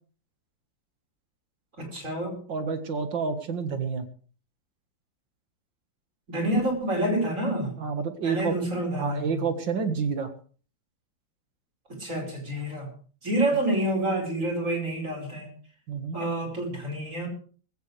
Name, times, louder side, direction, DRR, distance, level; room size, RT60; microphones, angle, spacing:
voice 1, 1.8-2.4 6.3-7.7 8.2-9.4 11.9-12.9 13.2-15.5 16.1-17.3, right 1 dB, 40° right, 1 dB, 5.5 m, -28 dB
voice 2, 2.5-4.1 7.8-8.5 8.9-10.3 15.9-16.2, right 5 dB, 70° right, 8 dB, 2.4 m, -29 dB
19.5 x 16.0 x 3.4 m, 0.41 s
omnidirectional pair, 2.1 m